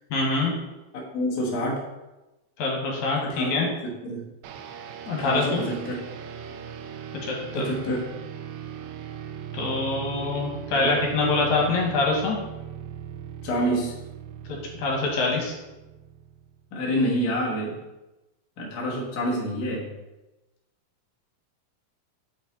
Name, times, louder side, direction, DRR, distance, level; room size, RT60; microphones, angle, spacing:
voice 1, 0.1-0.5 2.6-3.7 5.1-5.6 7.2-7.7 9.5-12.4 14.5-15.6, left 3 dB, 70° left, -1 dB, 2.7 m, -25 dB
voice 2, 0.9-1.8 3.2-3.5 3.8-4.3 5.1-6.0 7.5-8.0 10.7-10.9 13.4-13.9 16.7-17.8 18.6-19.9, equal, 50° left, -3 dB, 1.1 m, -27 dB
sound 1, 4.4-16.6, right 8 dB, 80° right, 1.7 m, -39 dB
7.2 x 5.1 x 4.1 m, 1.0 s
omnidirectional pair, 3.7 m